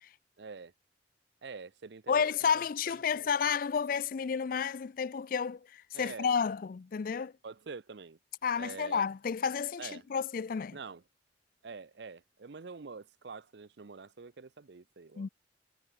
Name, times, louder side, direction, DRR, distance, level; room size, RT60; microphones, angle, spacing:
voice 1, 0.4-0.7 1.4-3.3 5.9-6.4 7.4-8.2 8.6-9.1 9.8-10.1 10.7-11.0 11.6-15.3, right 4 dB, 65° right, 0.6 m, -46 dB
voice 2, 2.1-7.3 8.4-10.8 15.2-15.3, left 6 dB, 50° left, 0.4 m, -31 dB
head